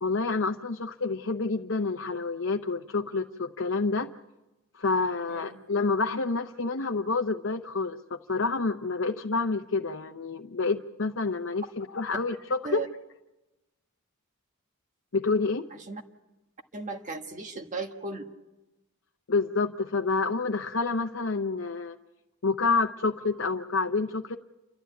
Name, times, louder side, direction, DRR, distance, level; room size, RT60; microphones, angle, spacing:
voice 1, 0.0-4.1 4.7-12.9 15.1-15.7 19.3-22.0 22.4-24.4, left 3 dB, 65° left, 4 dB, 0.8 m, -28 dB
voice 2, 5.3-5.6 12.6-12.9 15.9-16.0 16.7-18.3, right 3 dB, 40° right, 4 dB, 1.5 m, -36 dB
29.0 x 13.0 x 9.3 m, 1.0 s
head